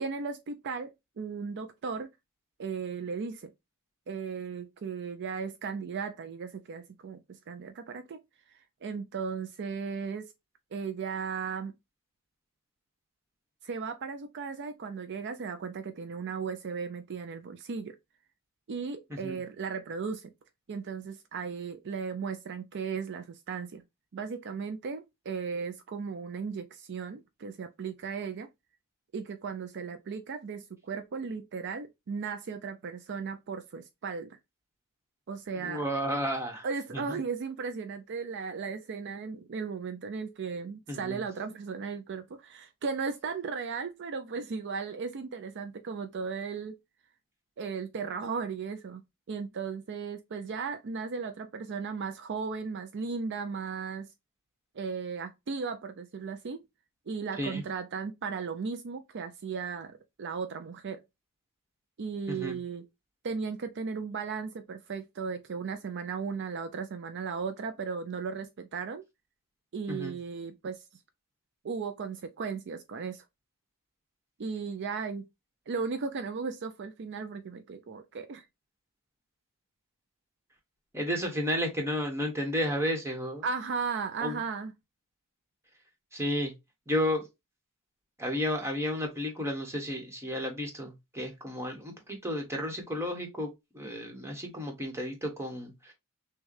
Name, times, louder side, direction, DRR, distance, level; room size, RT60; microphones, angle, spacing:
voice 1, 0.0-2.1 2.6-3.5 4.1-8.2 8.5-10.3 10.7-11.7 13.6-18.0 18.7-20.3 20.7-23.8 24.1-28.5 29.1-34.4 35.3-35.8 36.6-46.8 47.6-49.0 49.3-54.1 54.7-56.6 57.1-61.0 62.0-62.8 63.2-69.0 69.7-70.8 71.6-73.2 74.4-75.2 75.7-78.5 83.4-84.7, right 5 dB, 50° right, 0.4 m, -36 dB
voice 2, 35.5-36.7 36.9-37.2 40.9-41.2 57.4-57.6 62.3-62.6 69.9-70.1 80.9-83.4 84.2-84.4 86.1-86.5 86.9-87.3 88.2-95.9, equal, 10° right, 1.2 m, -32 dB
6.2 x 2.3 x 3.1 m
head